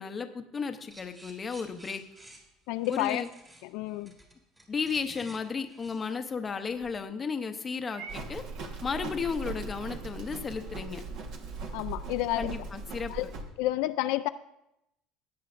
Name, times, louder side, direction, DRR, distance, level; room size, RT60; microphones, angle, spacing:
voice 1, 0.0-2.0 2.9-3.3 4.7-8.4 8.8-11.0 12.4-13.1, left 5 dB, 20° left, 7 dB, 0.7 m, -34 dB
sound 1, 0.9-7.0, right 1 dB, 15° right, 1.7 m, -53 dB
voice 2, 2.7-3.2 3.7-4.1 11.7-12.6 13.1-13.3 13.6-14.3, left 16 dB, 75° left, 11 dB, 0.3 m, -30 dB
Purr / Meow, 7.9-10.1, right 7 dB, 70° right, 0.7 m, -49 dB
Livestock farm animals working animals, 8.1-13.4, right 3 dB, 55° right, 1.3 m, -39 dB
17.0 x 9.4 x 2.5 m, 0.84 s
cardioid pair, 160°, 0 cm